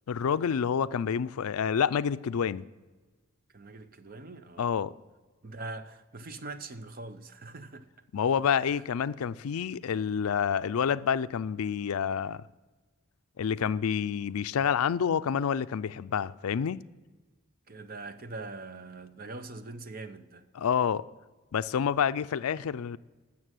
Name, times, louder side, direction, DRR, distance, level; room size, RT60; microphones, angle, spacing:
voice 1, 0.1-2.6 4.6-4.9 8.1-12.4 13.4-16.8 20.6-21.0 21.5-23.0, left 7 dB, 90° left, 0.4 m, -28 dB
voice 2, 3.5-4.7 5.4-7.9 17.7-20.4, right 3 dB, 40° right, 0.7 m, -42 dB
12.5 x 7.3 x 9.1 m
head